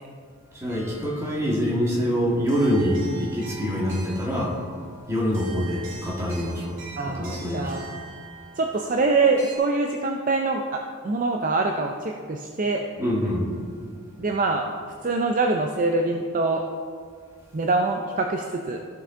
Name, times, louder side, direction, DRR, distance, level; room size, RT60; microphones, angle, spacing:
voice 1, 0.5-4.6 5.1-7.8 13.0-13.5, equal, 15° right, -4 dB, 1.7 m, -25 dB
sound 1, 0.7-9.6, right 3 dB, 55° right, 2.0 m, -44 dB
voice 2, 7.0-7.9 8.6-12.8 14.2-14.6 15.0-16.6 17.5-18.8, right 3 dB, 35° right, 2 dB, 0.4 m, -24 dB
15.0 x 5.6 x 3.7 m, 2.1 s
head